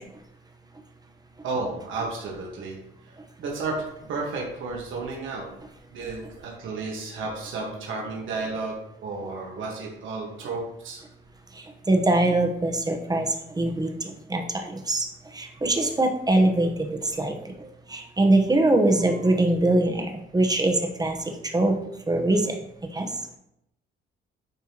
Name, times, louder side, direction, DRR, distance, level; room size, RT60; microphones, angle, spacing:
voice 1, 1.4-2.8 3.0-5.5 5.9-11.0, right 3 dB, 75° right, -2 dB, 1.5 m, -32 dB
voice 2, 11.9-13.3 13.6-13.9 14.3-14.4 14.9-15.1 15.4-16.9 17.2-17.3 17.9-20.1 20.3-21.1 21.5-21.7 22.1-22.4 22.9-23.1, right 2 dB, 20° right, 4 dB, 1.0 m, -22 dB
9.7 x 3.5 x 2.9 m, 0.79 s
cardioid pair, 90°, 20 cm